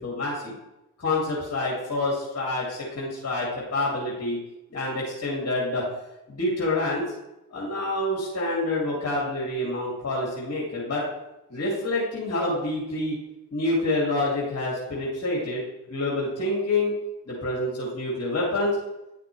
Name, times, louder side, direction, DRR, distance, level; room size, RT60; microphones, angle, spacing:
voice 1, 0.0-0.5 1.0-4.4 4.7-5.8 6.3-7.1 7.5-11.0 11.5-13.2 13.5-15.6 15.9-16.9 17.3-18.8, left 2 dB, 40° left, -5 dB, 2.5 m, -27 dB
9.7 x 5.8 x 3.4 m, 0.93 s
hypercardioid pair, 40°, 39 cm